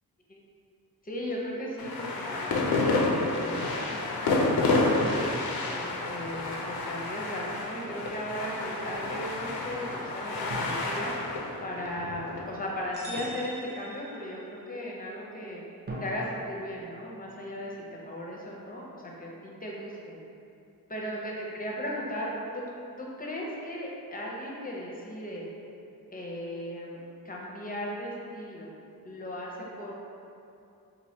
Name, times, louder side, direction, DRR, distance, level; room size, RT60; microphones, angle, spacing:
voice 1, 1.0-5.1 5.6-11.3 11.6-15.6 16.0-20.1 20.9-22.6 23.0-25.5 26.1-27.0 27.2-28.7 29.0-29.9, equal, 25° left, -3 dB, 0.6 m, -37 dB
sound 1, 1.8-13.2, left 2 dB, 80° left, 0.5 m, -29 dB
sound 2, 5.0-6.6 10.5-12.4 15.9-18.1, right 1 dB, 30° right, 0.5 m, -43 dB
sound 3, 12.9-14.7, right 2 dB, 60° right, 0.8 m, -44 dB
3.1 x 2.5 x 2.8 m, 2.7 s
cardioid pair, 55°, 36 cm